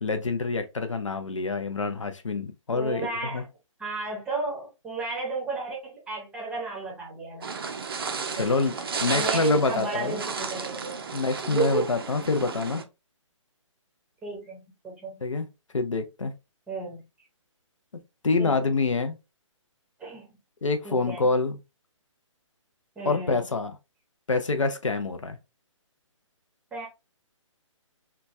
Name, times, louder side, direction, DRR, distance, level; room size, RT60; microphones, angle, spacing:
voice 1, 0.0-3.4 8.3-10.2 11.1-12.8 15.2-15.5 15.7-16.3 18.2-19.2 20.6-21.6 23.1-23.7 24.3-25.4, left 3 dB, 70° left, 0.5 m, -26 dB
voice 2, 2.7-3.4 3.8-7.6 8.4-8.5 9.1-11.0 11.5-11.9 14.2-15.2 16.7-17.0 18.4-18.7 20.0-20.4 20.8-21.3 23.0-23.4 26.7-26.9, right 4 dB, 5° right, 0.7 m, -33 dB
sound 1, 7.4-12.8, right 5 dB, 45° right, 0.4 m, -33 dB
2.9 x 2.3 x 2.5 m
figure-of-eight pair, 135°, 17 cm